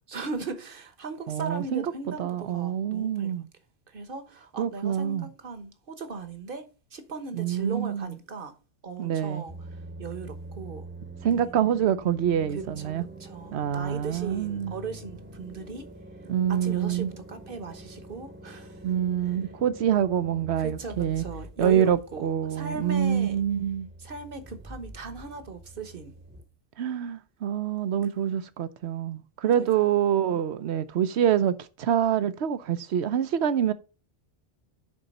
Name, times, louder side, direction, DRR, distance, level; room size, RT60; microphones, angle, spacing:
voice 1, 0.1-3.3 3.9-6.7 6.9-8.5 8.8-10.8 11.4-11.5 12.5-12.9 13.2-15.9 16.5-18.9 20.6-23.4 24.0-26.1 29.4-29.9, right 4 dB, 50° right, 1.3 m, -38 dB
voice 2, 1.3-1.9 2.2-3.5 4.6-5.3 7.3-8.1 9.0-9.4 11.2-13.0 13.5-14.8 16.3-17.1 18.8-21.2 21.6-23.9 26.8-33.7, right 9 dB, 70° right, 1.0 m, -26 dB
sound 1, 9.5-26.4, right 1 dB, 10° right, 0.9 m, -45 dB
10.0 x 4.0 x 5.3 m
omnidirectional pair, 1.2 m